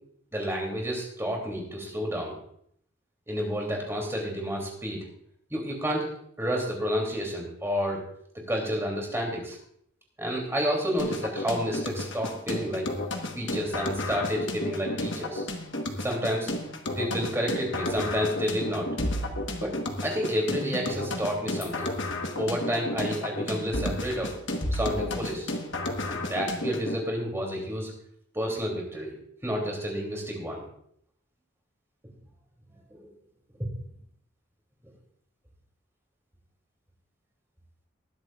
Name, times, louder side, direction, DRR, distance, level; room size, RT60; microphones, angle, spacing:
voice 1, 0.3-2.3 3.3-5.1 5.5-6.1 6.4-8.0 8.3-9.6 10.2-12.9 13.4-15.4 16.0-16.5 17.0-18.9 19.6-21.9 22.4-24.3 24.7-25.5 26.1-27.9 28.3-29.1 29.4-30.6 32.9-33.1 33.6-33.7, equal, 15° right, 0 dB, 3.1 m, -30 dB
sound 1, 11.0-27.0, left 1 dB, 65° left, 1.4 m, -32 dB
20.0 x 10.5 x 2.5 m, 0.67 s
head